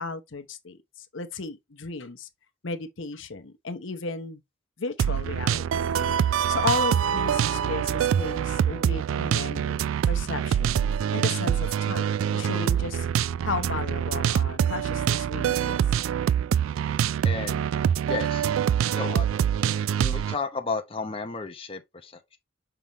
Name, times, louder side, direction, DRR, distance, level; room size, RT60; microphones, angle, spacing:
voice 1, 0.0-2.3 2.6-4.4 4.8-10.8 11.1-13.1 13.4-15.8, left 4 dB, 70° left, 0.9 m, -34 dB
sound 1, 5.0-20.4, right 8 dB, 85° right, 0.3 m, -25 dB
voice 2, 17.2-17.7 18.0-18.5 18.9-19.3 20.0-22.4, left 4 dB, 30° left, 0.8 m, -33 dB
5.8 x 5.4 x 3.0 m
head